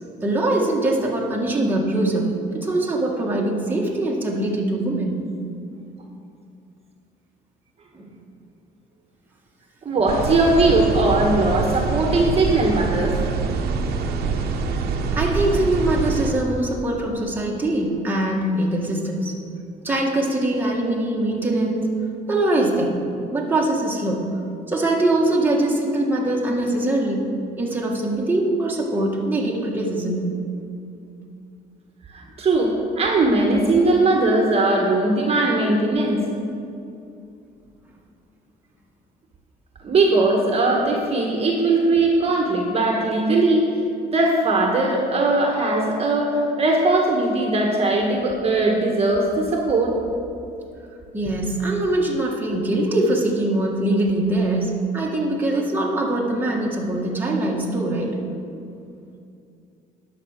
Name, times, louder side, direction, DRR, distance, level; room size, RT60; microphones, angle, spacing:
voice 1, 0.2-5.2 7.9-8.1 14.6-19.4 19.8-21.9 22.3-23.0 23.3-24.3 24.7-27.2 27.6-30.3 51.1-58.2, right 1 dB, 10° right, -3 dB, 1.7 m, -22 dB
voice 2, 9.8-13.2 32.1-36.2 39.8-43.6 44.1-50.0, right 2 dB, 35° right, 0 dB, 1.4 m, -19 dB
sound 1, 10.1-16.3, right 5 dB, 65° right, 1.0 m, -25 dB
10.5 x 6.0 x 6.6 m, 2.5 s
cardioid pair, 110°, 17 cm